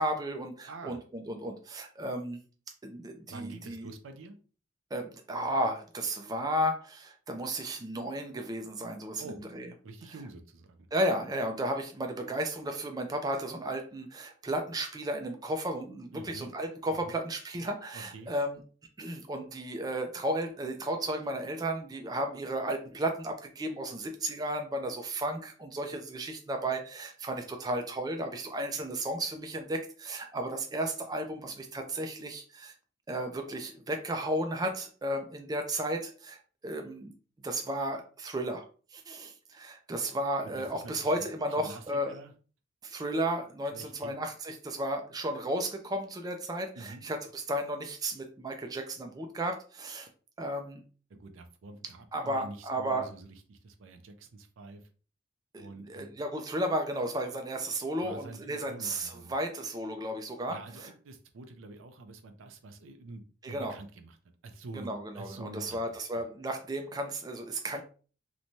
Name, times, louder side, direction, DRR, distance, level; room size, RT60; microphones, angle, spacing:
voice 1, 0.0-2.4 2.8-3.9 4.9-9.7 10.9-18.6 19.0-32.7 33.1-37.1 37.4-38.7 38.9-42.2 42.8-50.1 50.4-50.8 52.1-53.1 55.5-60.9 63.4-63.7 64.7-67.8, right 1 dB, 20° right, 5 dB, 0.3 m, -34 dB
voice 2, 0.7-1.0 3.3-4.4 9.2-9.4 9.8-10.9 16.1-16.5 16.9-17.2 17.9-18.3 40.4-41.1 41.6-41.8 42.1-42.3 43.7-44.2 46.8-47.0 51.1-54.8 55.6-56.1 58.0-59.3 60.5-64.2 64.4-66.1, right 2 dB, 80° right, 7 dB, 0.5 m, -47 dB
3.0 x 2.1 x 2.6 m, 0.38 s
head